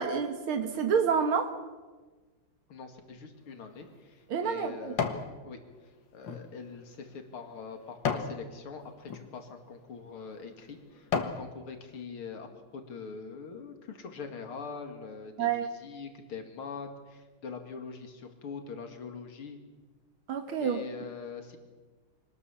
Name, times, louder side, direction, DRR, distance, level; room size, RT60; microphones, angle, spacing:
voice 1, 0.0-1.5 4.3-4.9 15.4-15.7 20.3-20.8, right 6 dB, 80° right, 7 dB, 2.2 m, -28 dB
voice 2, 2.7-5.6 6.1-19.6 20.6-21.6, left 5 dB, 90° left, 5 dB, 3.0 m, -43 dB
sound 1, 3.5-5.3 5.8-8.4 9.0-9.2 9.9-10.1 10.6-11.5 11.9-12.0, left 6 dB, 60° left, 2.2 m, -35 dB
25.0 x 19.5 x 7.1 m, 1.3 s
omnidirectional pair, 2.3 m